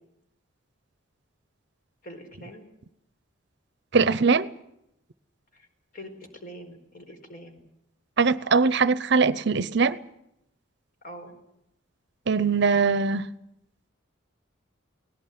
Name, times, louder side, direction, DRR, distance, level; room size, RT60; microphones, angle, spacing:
voice 1, 2.0-2.7 5.5-5.7 5.9-6.1 6.4-7.6 11.0-11.3, equal, 45° left, 4.6 m, -43 dB
voice 2, 3.9-4.5 8.2-10.0 12.3-13.3, right 4 dB, 60° right, 0.8 m, -21 dB
19.5 x 17.5 x 9.4 m
head